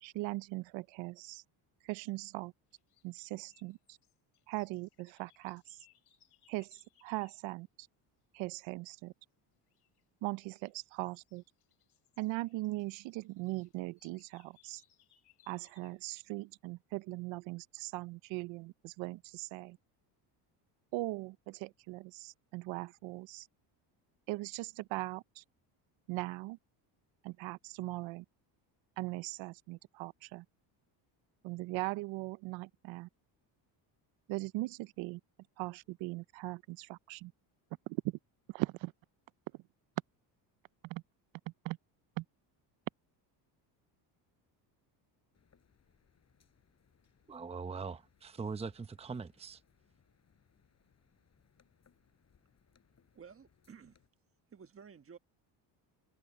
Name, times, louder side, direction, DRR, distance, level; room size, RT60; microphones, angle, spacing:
voice 1, 0.0-1.4 1.8-2.5 3.0-4.0 4.5-5.8 6.5-7.9 8.3-9.1 10.2-11.4 12.2-14.8 15.5-19.8 20.9-23.5 24.3-25.4 26.1-26.6 27.2-28.2 29.0-30.4 31.4-33.1 34.3-35.2 35.6-37.3 37.9-38.2 38.5-38.9 40.8-41.0 41.6-41.8 42.2-42.3, right 21 dB, 85° right, 0.7 m, -40 dB
sound 1, 2.7-7.4 9.7-10.0 10.5-16.1, left 12 dB, 60° left, 3.0 m, -70 dB
sound 2, 45.3-54.1, left 7 dB, 35° left, 4.3 m, -71 dB
voice 2, 47.3-49.6, right 5 dB, 15° right, 0.8 m, -41 dB
voice 3, 53.1-54.0 54.5-55.2, right 6 dB, 30° right, 1.5 m, -53 dB
cardioid pair, 110°, 45 cm